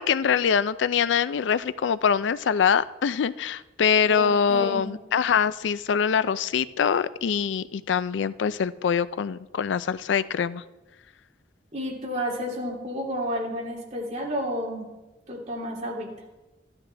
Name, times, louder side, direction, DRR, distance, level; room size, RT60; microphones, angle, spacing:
voice 1, 0.0-10.6, left 7 dB, 90° left, 16 dB, 0.4 m, -24 dB
voice 2, 4.0-4.9 11.7-14.8 15.3-16.1, equal, 40° right, -2 dB, 2.6 m, -31 dB
13.5 x 11.5 x 3.3 m, 1.1 s
head